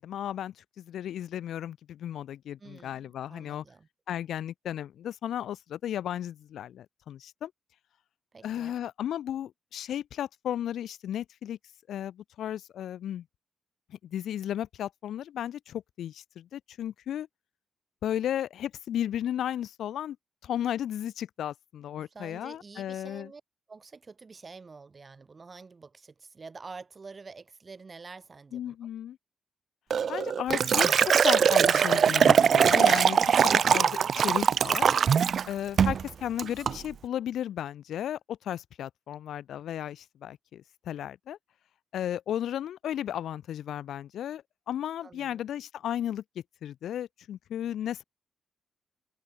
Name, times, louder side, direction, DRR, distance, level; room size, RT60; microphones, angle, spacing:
voice 1, 0.0-3.6 4.1-7.5 8.4-11.6 11.9-13.2 14.0-17.3 18.0-20.2 20.4-23.3 28.5-29.2 30.1-34.9 35.4-41.4 41.9-46.2 46.6-48.0, left 10 dB, 85° left, 3.7 m, -34 dB
voice 2, 2.6-3.9 8.3-8.8 22.1-23.4 23.7-28.8 35.9-36.0 45.0-45.5, right 4 dB, 25° right, 5.6 m, -47 dB
Liquid, 29.9-35.5 35.8-36.0 36.4-36.8, right 7 dB, 50° right, 1.3 m, -22 dB
wide cardioid pair, 155°, 0 cm